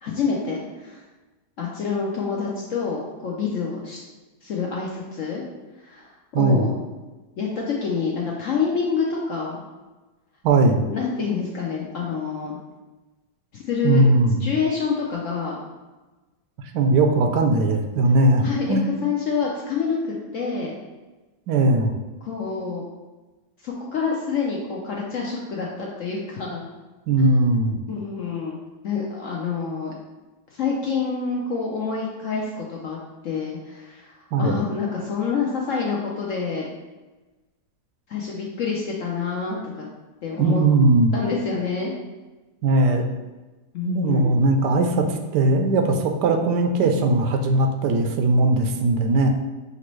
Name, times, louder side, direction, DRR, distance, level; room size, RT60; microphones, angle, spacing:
voice 1, 0.0-1.0 1.6-4.0 4.4-5.4 5.8-6.8 7.4-9.6 10.8-12.6 13.5-14.0 14.4-15.6 18.4-20.8 22.2-22.9 23.6-26.6 27.9-28.6 28.8-29.9 30.5-33.0 33.2-36.7 38.1-39.9 40.2-40.6 41.1-41.9 43.7-44.4, left 5 dB, 70° left, -3 dB, 0.7 m, -27 dB
voice 2, 6.3-6.7 10.4-10.8 13.8-14.5 16.7-18.9 21.5-21.9 27.1-27.8 34.3-34.5 40.4-41.1 42.6-43.1 43.8-49.3, right 2 dB, 80° right, 4 dB, 1.2 m, -19 dB
5.9 x 2.7 x 3.0 m, 1.2 s
omnidirectional pair, 1.8 m